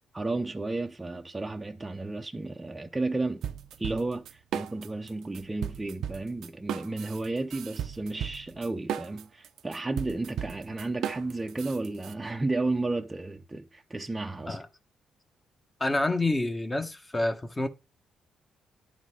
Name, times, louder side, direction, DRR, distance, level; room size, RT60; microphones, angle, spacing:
voice 1, 0.1-3.5 3.8-14.6, right 2 dB, 15° right, 0.6 m, -33 dB
sound 1, 3.4-5.1 5.3-12.1, right 9 dB, 75° right, 0.6 m, -35 dB
voice 2, 15.8-17.7, left 2 dB, 20° left, 1.2 m, -28 dB
11.0 x 3.9 x 4.9 m
cardioid pair, 90°, 0 cm